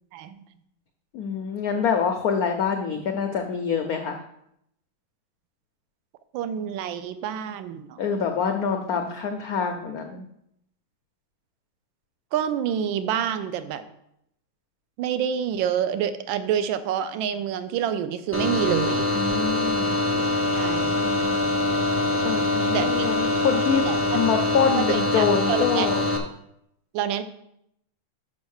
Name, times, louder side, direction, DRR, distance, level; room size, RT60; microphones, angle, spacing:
voice 1, 1.1-4.2 8.0-10.3 19.1-20.0 21.0-21.4 22.2-23.9 24.1-26.0, left 6 dB, 75° left, 5 dB, 0.8 m, -25 dB
voice 2, 6.3-8.0 12.3-13.8 15.0-19.1 20.1-20.2 20.5-21.0 22.7-23.1 23.8-24.0 24.8-25.9 26.9-27.2, right 9 dB, 75° right, 12 dB, 1.3 m, -27 dB
sound 1, 18.3-26.2, left 2 dB, 15° right, 0.4 m, -24 dB
6.1 x 5.7 x 6.4 m, 0.77 s
omnidirectional pair, 2.3 m